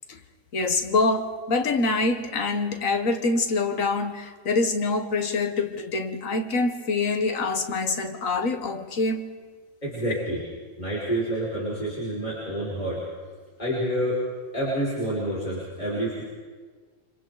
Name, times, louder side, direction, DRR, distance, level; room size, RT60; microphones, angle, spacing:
voice 1, 0.5-9.3, left 3 dB, 85° left, 1.8 m, -25 dB
voice 2, 9.8-10.4 10.8-13.0 13.6-14.2 14.5-16.2, right 1 dB, 35° left, 5.6 m, -28 dB
29.0 x 26.0 x 4.0 m
omnidirectional pair, 1.4 m